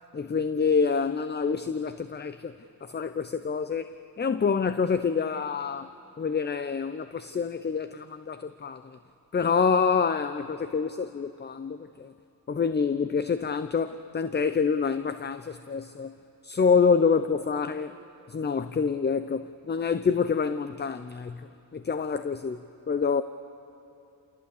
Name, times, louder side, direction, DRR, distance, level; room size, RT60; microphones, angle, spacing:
voice 1, 0.1-5.9 6.2-9.0 9.3-12.1 12.5-16.1 16.4-17.9 18.3-22.6 22.9-23.2, left 5 dB, 25° left, 12 dB, 0.7 m, -27 dB
29.0 x 16.5 x 8.5 m, 2.7 s
cardioid pair, 75°, 38 cm